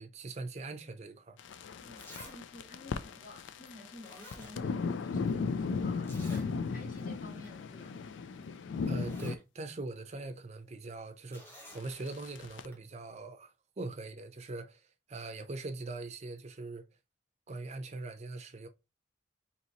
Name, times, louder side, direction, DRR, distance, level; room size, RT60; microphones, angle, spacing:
voice 1, 0.0-1.4 8.9-14.8 15.1-16.9 17.5-18.7, right 2 dB, 35° right, 0.5 m, -42 dB
sound 1, 1.4-9.3 11.8-12.7, left 5 dB, 80° left, 0.4 m, -36 dB
Zipper (clothing), 1.4-1.5 2.0-2.4 2.7-2.8 3.7-3.8 4.0-5.0 5.3-5.4 6.0-6.5 6.9-7.0 7.4-7.6 8.4-8.5 8.8-9.4 11.3-11.8 12.7-12.8, equal, 10° left, 1.1 m, -51 dB
voice 2, 1.8-8.0, left 2 dB, 45° left, 1.6 m, -51 dB
4.0 x 2.9 x 2.8 m
head